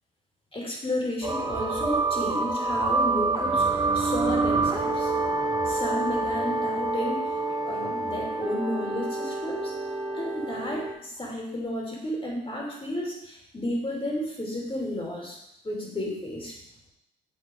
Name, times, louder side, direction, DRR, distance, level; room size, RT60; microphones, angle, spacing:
voice 1, 0.5-5.1 5.6-7.2 7.5-9.7 10.1-15.4 15.6-16.5, left 1 dB, 25° left, -2 dB, 2.8 m, -32 dB
sound 1, 1.2-10.9, right 3 dB, 20° right, 1.2 m, -27 dB
7.8 x 3.8 x 4.6 m, 0.79 s
supercardioid pair, 60°, 21 cm